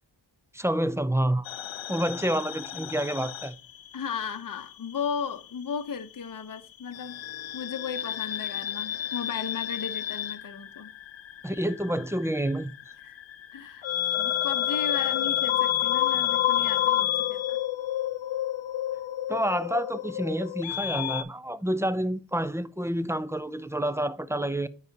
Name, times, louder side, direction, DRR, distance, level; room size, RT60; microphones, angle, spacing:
voice 1, 0.5-1.5 1.9-3.6 11.4-12.7 19.3-24.7, right 1 dB, 5° right, 0.4 m, -28 dB
sound 1, 1.5-4.3 4.6-5.7 6.9-21.2, left 12 dB, 90° left, 0.6 m, -30 dB
voice 2, 3.9-7.2 7.5-10.9 13.0-13.2 13.5-13.9 14.2-17.6, left 6 dB, 45° left, 0.8 m, -35 dB
9.6 x 4.0 x 2.7 m
wide cardioid pair, 75°, 45 cm